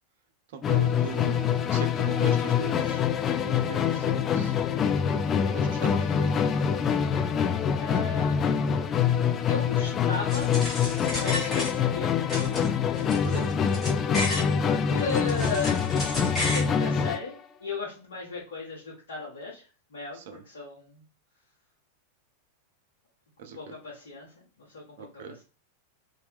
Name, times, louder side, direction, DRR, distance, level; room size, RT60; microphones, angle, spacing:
voice 1, 0.5-3.0 3.3-4.5 5.5-6.3 13.2-13.5 20.2-20.4 23.4-23.6 25.0-25.4, right 7 dB, 55° right, 7 dB, 0.5 m, -39 dB
Musical instrument, 0.6-17.3, left 7 dB, 25° left, 0.3 m, -25 dB
voice 2, 7.8-8.8 9.5-10.5 10.9-12.6 13.0-13.5 14.6-15.8 16.4-19.6 19.9-21.0 23.5-25.4, left 4 dB, 60° left, -5 dB, 1.0 m, -36 dB
sound 1, 10.3-12.0 12.3-14.5 14.9-16.7, left 1 dB, 10° left, 1.4 m, -33 dB
2.9 x 2.5 x 3.2 m, 0.36 s
figure-of-eight pair, 90°, 0 cm